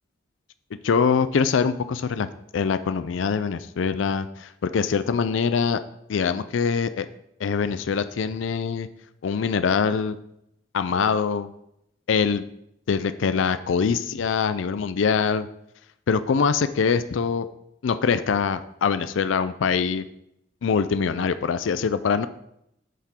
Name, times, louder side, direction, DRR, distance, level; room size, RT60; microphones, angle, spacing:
voice 1, 0.8-2.3 2.5-5.8 6.1-7.1 7.4-8.9 9.2-10.2 10.7-11.5 12.1-12.4 12.9-15.5 16.1-17.5 17.8-20.0 20.6-22.3, left 6 dB, 90° left, 12 dB, 0.4 m, -23 dB
8.2 x 6.0 x 4.4 m, 0.79 s
head